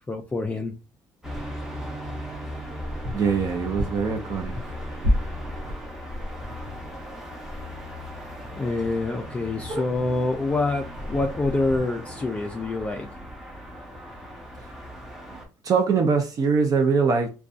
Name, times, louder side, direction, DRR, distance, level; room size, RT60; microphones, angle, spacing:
voice 1, 0.1-0.7 8.5-13.1, left 2 dB, 15° left, 0.3 m, -26 dB
sound 1, 1.2-15.5, equal, 5° right, 0.7 m, -38 dB
sound 2, 1.3-1.8 2.5-7.0 7.4-7.6 7.9-8.0 8.5-8.6 8.8-8.9 9.2-10.3 10.9-11.8, equal, 80° right, 0.8 m, -32 dB
voice 2, 3.1-4.5 15.3-17.3, right 5 dB, 45° right, 0.5 m, -23 dB
2.5 x 2.2 x 2.4 m
cardioid pair, 110°, 8 cm